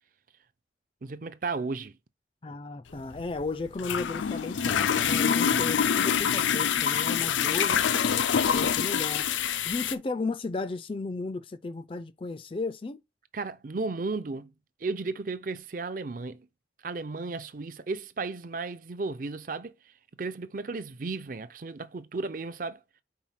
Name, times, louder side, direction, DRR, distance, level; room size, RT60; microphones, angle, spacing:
voice 1, 1.0-2.0 5.1-5.8 13.3-14.5 14.8-16.5 16.8-19.7 20.2-22.8, right 3 dB, 45° right, 0.5 m, -34 dB
voice 2, 2.4-7.8 8.5-9.3 9.6-13.0, left 3 dB, 30° left, 0.4 m, -34 dB
sound 1, 2.9-9.9, left 8 dB, 90° left, 0.5 m, -26 dB
4.7 x 4.6 x 5.7 m
head